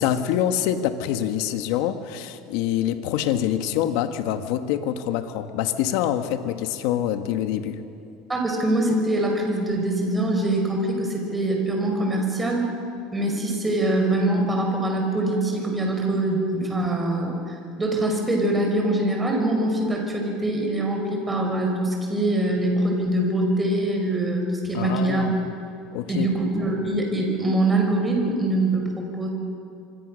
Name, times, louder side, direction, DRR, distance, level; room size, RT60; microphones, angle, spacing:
voice 1, 0.0-7.8 24.7-25.4 25.9-26.3, left 10 dB, 70° left, 8 dB, 1.7 m, -25 dB
voice 2, 8.3-12.7 13.1-25.2 26.1-29.3, right 1 dB, 10° right, 1 dB, 5.6 m, -23 dB
25.5 x 25.5 x 6.6 m, 2.6 s
supercardioid pair, 140°, 0 cm